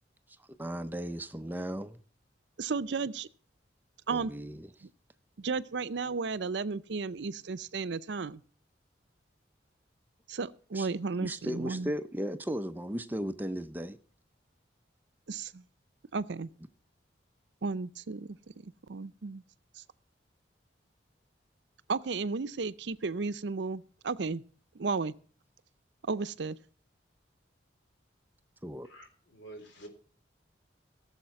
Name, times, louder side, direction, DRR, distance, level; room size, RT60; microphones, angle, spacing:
voice 1, 0.6-2.0 4.1-4.7 10.7-10.9 11.2-14.0 28.6-28.9, equal, 10° right, 0.5 m, -36 dB
voice 2, 2.6-3.3 4.1-4.3 4.8-4.9 5.4-8.4 10.3-11.9 15.3-15.6 16.1-16.5 17.6-19.4 19.8-19.9 21.9-24.4 24.7-25.1 26.1-26.6, right 4 dB, 75° right, 0.6 m, -34 dB
voice 3, 28.8-29.9, right 1 dB, 85° left, 3.4 m, -49 dB
16.5 x 7.2 x 5.8 m
head